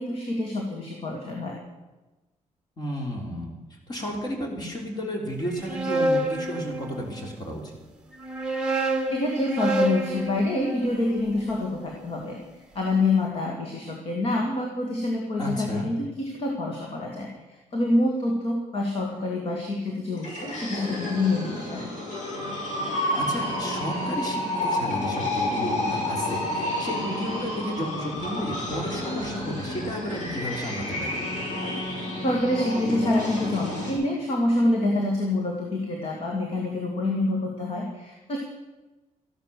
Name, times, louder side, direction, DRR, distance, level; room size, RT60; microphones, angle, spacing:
voice 1, 0.0-1.6 9.1-12.4 12.7-21.9 32.2-38.4, left 2 dB, 50° left, 0 dB, 2.4 m, -26 dB
voice 2, 2.8-7.8 15.4-15.9 23.1-31.2, equal, 35° left, 1 dB, 3.1 m, -33 dB
sound 1, 5.4-7.3 8.1-12.3, right 2 dB, 5° right, 1.5 m, -29 dB
sound 2, 20.2-33.9, left 1 dB, 85° left, 6.8 m, -30 dB
14.5 x 11.5 x 6.9 m, 1.1 s
wide cardioid pair, 170°, 13 cm